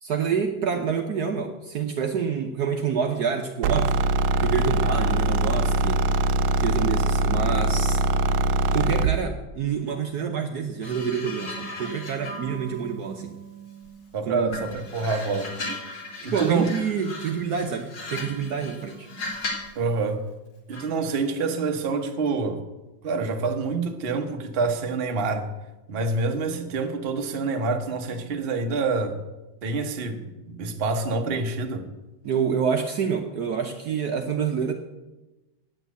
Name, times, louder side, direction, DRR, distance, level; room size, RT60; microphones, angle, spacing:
voice 1, 0.0-3.9 4.4-6.0 6.6-8.0 8.7-13.3 14.2-14.6 16.3-19.1 32.2-34.7, right 6 dB, 60° right, 1.2 m, -27 dB
sound 1, 3.6-9.2, right 1 dB, 85° right, 1.4 m, -22 dB
sound 2, 10.8-14.1 14.5-19.8 20.7-21.0, left 1 dB, 60° left, 2.9 m, -37 dB
voice 2, 14.1-15.5 16.2-16.7 19.7-20.2 20.7-22.6 23.0-25.5 25.9-29.2 29.6-31.9, right 4 dB, 40° right, 1.1 m, -27 dB
9.1 x 8.7 x 8.1 m
omnidirectional pair, 2.2 m